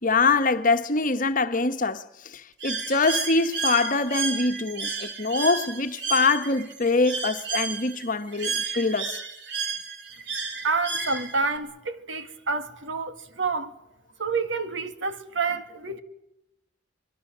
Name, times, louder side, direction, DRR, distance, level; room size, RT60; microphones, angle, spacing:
voice 1, 0.0-9.2, left 3 dB, 45° left, 1.2 m, -24 dB
Bird, 2.6-11.6, right 5 dB, 65° right, 3.6 m, -32 dB
voice 2, 10.6-13.8 14.2-16.0, right 4 dB, 85° right, 2.0 m, -28 dB
25.5 x 22.0 x 7.4 m
head